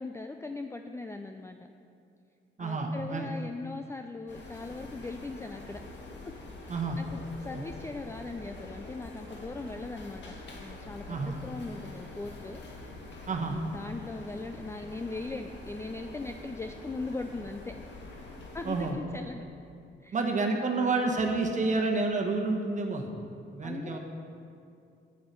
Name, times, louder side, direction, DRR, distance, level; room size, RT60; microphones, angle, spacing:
voice 1, 0.0-1.6 2.6-5.8 6.2-6.3 6.6-10.3 10.6-13.0 13.4-17.7 18.5-19.5 20.0-20.2 23.6-24.0, left 3 dB, 15° left, 6 dB, 0.4 m, -39 dB
voice 2, 2.6-3.3 6.7-7.0 11.1-11.4 13.3-13.6 18.6-19.0 20.1-23.1 23.5-24.0, right 3 dB, 40° right, 2 dB, 1.3 m, -29 dB
sound 1, 4.3-18.9, left 2 dB, 65° left, 1.8 m, -45 dB
9.9 x 8.8 x 5.3 m, 2.5 s
cardioid pair, 90°, 20 cm